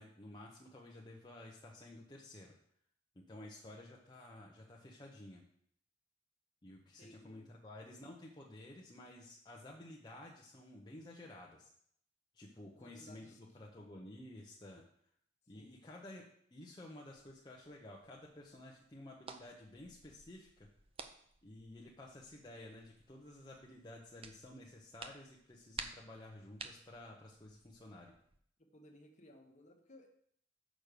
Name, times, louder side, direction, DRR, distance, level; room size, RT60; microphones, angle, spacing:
voice 1, 0.0-2.5 3.1-5.4 6.6-11.7 12.3-14.8 15.5-16.3 16.5-20.7 21.4-28.2, left 1 dB, 25° left, -3 dB, 0.9 m, -53 dB
voice 2, 7.0-7.5 12.7-13.4 15.5-15.8 28.7-30.1, left 1 dB, 40° left, 2 dB, 1.3 m, -59 dB
sound 1, 17.1-28.4, right 5 dB, 30° right, 0.6 m, -54 dB
6.3 x 5.2 x 6.7 m, 0.65 s
head